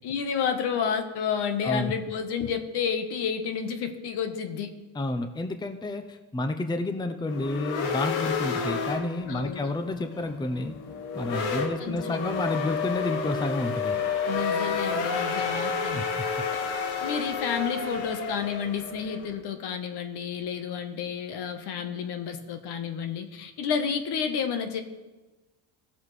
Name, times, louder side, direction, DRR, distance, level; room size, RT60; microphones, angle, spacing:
voice 1, 0.0-4.7 9.3-9.7 11.8-12.3 14.2-16.1 16.5-16.6 17.0-24.8, left 7 dB, 60° left, 8 dB, 1.3 m, -30 dB
voice 2, 1.6-1.9 4.9-10.7 11.1-14.0 15.9-16.3, left 2 dB, 10° left, 8 dB, 0.7 m, -30 dB
sound 1, 7.3-19.4, left 5 dB, 80° left, 1.5 m, -30 dB
16.5 x 7.1 x 3.3 m, 1.2 s
supercardioid pair, 80°, 45 cm